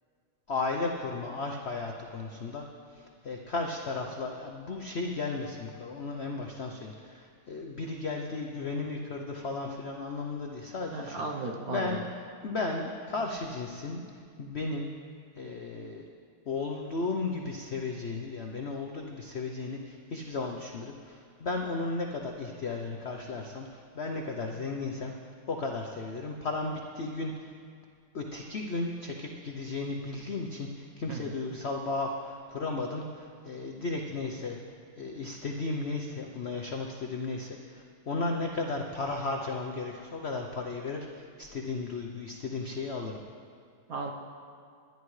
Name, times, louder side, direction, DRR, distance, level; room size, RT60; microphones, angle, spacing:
voice 1, 0.5-11.2 11.7-12.0 12.4-14.0 14.4-14.9 15.3-16.1 16.5-27.5 28.1-34.6 35.0-43.2, left 3 dB, 75° left, 2 dB, 0.6 m, -35 dB
voice 2, 10.9-12.0 31.1-31.3 43.9-44.1, right 3 dB, 55° right, 1 dB, 1.3 m, -35 dB
21.0 x 10.5 x 3.2 m, 2.2 s
omnidirectional pair, 2.2 m